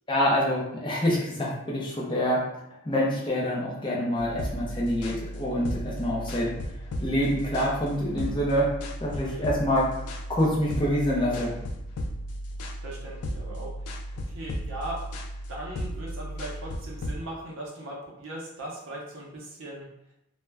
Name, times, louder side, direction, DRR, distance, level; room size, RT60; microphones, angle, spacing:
voice 1, 0.1-2.4 2.8-6.5 7.0-8.7 9.0-11.6, equal, 20° left, -4 dB, 0.5 m, -26 dB
sound 1, 4.2-17.2, equal, 90° left, 0.3 m, -35 dB
voice 2, 9.1-9.5 12.8-13.9 14.3-15.1 15.5-19.9, right 1 dB, 65° right, -4 dB, 0.6 m, -39 dB
2.1 x 2.1 x 3.3 m, 0.82 s
head